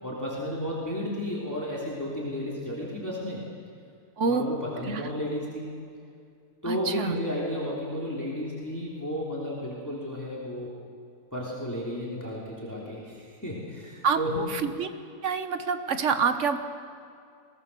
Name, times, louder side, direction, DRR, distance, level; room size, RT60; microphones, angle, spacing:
voice 1, 0.0-3.4 4.3-5.7 6.6-10.7 11.3-14.5, equal, 10° left, -4 dB, 3.2 m, -33 dB
voice 2, 4.2-4.5 4.8-5.1 6.6-7.2 14.0-14.9 15.2-16.6, right 5 dB, 50° right, 9 dB, 1.3 m, -27 dB
21.5 x 17.5 x 6.9 m, 2.4 s
omnidirectional pair, 1.7 m